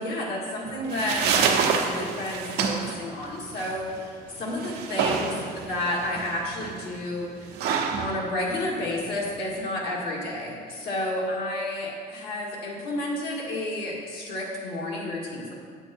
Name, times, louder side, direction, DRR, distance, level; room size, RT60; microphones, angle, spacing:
voice 1, 0.0-7.3 8.0-15.5, left 1 dB, 70° left, -3 dB, 2.3 m, -31 dB
sound 1, 0.6-9.6, right 6 dB, 90° right, 0.9 m, -29 dB
8.1 x 8.1 x 4.5 m, 2.1 s
cardioid pair, 110°, 17 cm